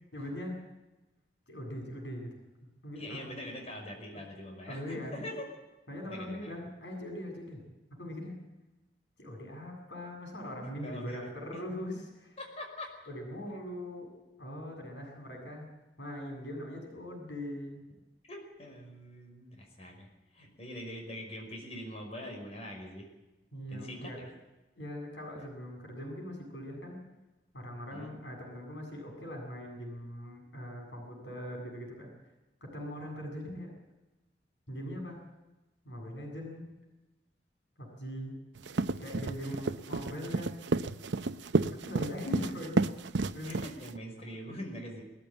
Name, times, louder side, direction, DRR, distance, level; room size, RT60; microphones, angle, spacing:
voice 1, 0.1-0.6 1.5-3.3 4.1-4.2 4.6-5.2 5.9-7.6 8.0-8.4 9.2-12.4 13.1-14.1 14.4-15.7 16.0-17.9 23.5-24.2 24.8-27.0 27.5-32.1 32.6-33.7 34.7-35.2 35.8-36.7 37.8-38.4 39.0-40.7 41.7-42.8 43.3-43.6 44.2-44.3, equal, 85° left, 1 dB, 7.5 m, -41 dB
voice 2, 2.9-5.5 6.1-6.6 10.4-10.5 10.8-11.6 12.4-12.9 18.3-20.1 20.3-23.1 23.7-24.3 27.9-28.1 43.5-45.0, equal, 35° left, 2 dB, 5.5 m, -43 dB
sound 1, 38.6-44.0, right 3 dB, 85° right, 0.7 m, -31 dB
20.0 x 14.5 x 9.0 m, 1.1 s
head